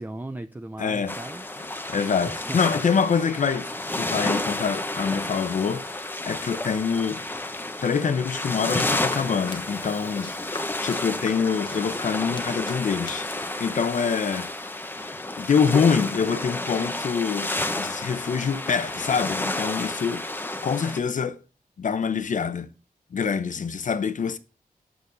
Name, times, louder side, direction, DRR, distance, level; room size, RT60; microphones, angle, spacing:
voice 1, 0.0-2.6, right 2 dB, 10° right, 0.4 m, -38 dB
voice 2, 0.8-1.1 1.9-7.2 7.8-13.3 13.6-14.5 15.4-21.4 21.8-22.7 23.1-24.4, left 6 dB, 60° left, 0.8 m, -25 dB
sound 1, 1.1-21.0, left 2 dB, 15° left, 0.8 m, -31 dB
sound 2, 9.1-13.7, left 3 dB, 30° left, 1.1 m, -42 dB
8.6 x 7.1 x 3.9 m
wide cardioid pair, 180°, 15 cm